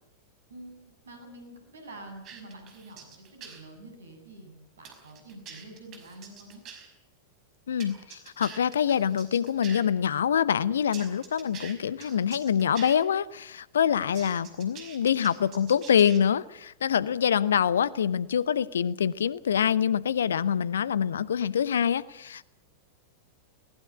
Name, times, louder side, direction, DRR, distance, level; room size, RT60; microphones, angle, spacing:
voice 1, 0.5-6.6, right 1 dB, 65° right, 5 dB, 7.8 m, -47 dB
sound 1, 2.2-3.6 4.8-6.9 7.8-9.8 10.9-13.0 14.1-16.2, right 7 dB, 35° right, 5.3 m, -45 dB
voice 2, 7.7-22.4, left 8 dB, 65° left, 20 dB, 0.8 m, -25 dB
21.0 x 19.0 x 8.5 m, 0.86 s
figure-of-eight pair, 90°, 0 cm